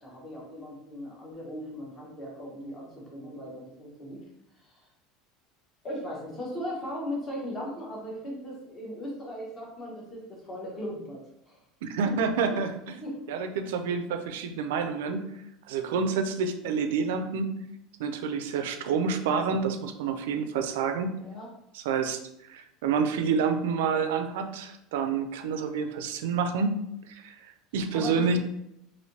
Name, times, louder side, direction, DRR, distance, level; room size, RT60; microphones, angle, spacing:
voice 1, 0.0-4.2 4.6-4.8 5.8-11.6 12.5-12.6 13.0-13.2 21.2-21.5 27.9-28.4, left 1 dB, 15° left, -3 dB, 0.9 m, -38 dB
voice 2, 11.8-13.0 13.3-15.3 15.7-17.6 18.0-21.1 21.7-22.2 22.5-28.4, right 5 dB, 85° right, 8 dB, 0.4 m, -28 dB
3.2 x 2.6 x 2.8 m, 0.81 s
cardioid pair, 180°, 0 cm